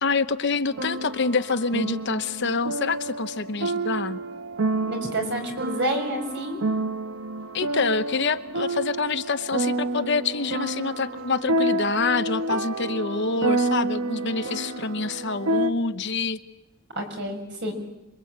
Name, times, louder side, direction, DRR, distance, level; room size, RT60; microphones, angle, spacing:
voice 1, 0.0-4.2 7.5-16.4, left 4 dB, 55° left, 10 dB, 1.0 m, -26 dB
sound 1, 0.7-15.7, right 2 dB, 75° right, 1.1 m, -29 dB
voice 2, 4.9-6.6 16.9-17.7, right 1 dB, 55° right, 3 dB, 5.7 m, -29 dB
27.0 x 23.5 x 8.7 m, 0.92 s
head